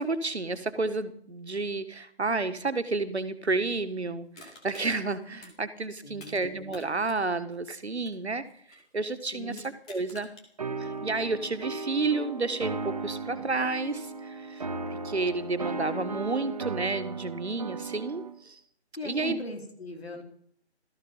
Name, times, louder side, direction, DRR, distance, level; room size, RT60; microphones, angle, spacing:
voice 1, 0.0-8.5 8.9-10.3 10.8-14.7 15.0-18.6 19.0-19.4, right 3 dB, 70° right, 10 dB, 1.8 m, -31 dB
Crushing, 4.3-6.4 6.7-8.9 9.5-10.5 10.9-11.0, left 2 dB, 5° left, 0.8 m, -51 dB
voice 2, 6.0-6.4 9.3-9.6 19.0-20.2, left 2 dB, 65° left, 3 dB, 4.8 m, -39 dB
sound 1, 10.6-18.4, right 3 dB, 35° right, 1.0 m, -36 dB
17.5 x 14.0 x 5.6 m, 0.64 s
figure-of-eight pair, 155°, 34 cm